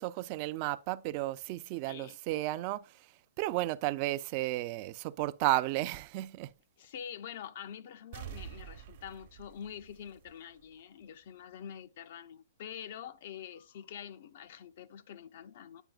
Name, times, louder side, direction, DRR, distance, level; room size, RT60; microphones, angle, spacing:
voice 1, 0.0-3.1 3.4-6.5, right 17 dB, 35° right, 0.3 m, -33 dB
voice 2, 1.8-2.2 6.8-15.8, left 9 dB, 55° left, 0.5 m, -46 dB
sound 1, 8.1-10.7 11.1-11.2, right 10 dB, 55° right, 0.8 m, -47 dB
9.0 x 4.8 x 2.3 m
hypercardioid pair, 150°, 0 cm